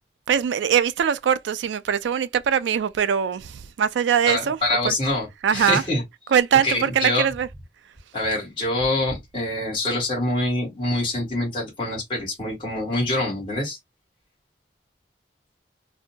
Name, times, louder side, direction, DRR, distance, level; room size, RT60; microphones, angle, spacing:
voice 1, 0.3-4.6 4.8-4.9 5.4-5.8 6.3-7.5, right 8 dB, 80° right, 0.3 m, -22 dB
voice 2, 4.3-6.0 6.6-7.3 8.1-13.8, left 1 dB, 30° left, 1.5 m, -25 dB
2.7 x 2.1 x 2.7 m
head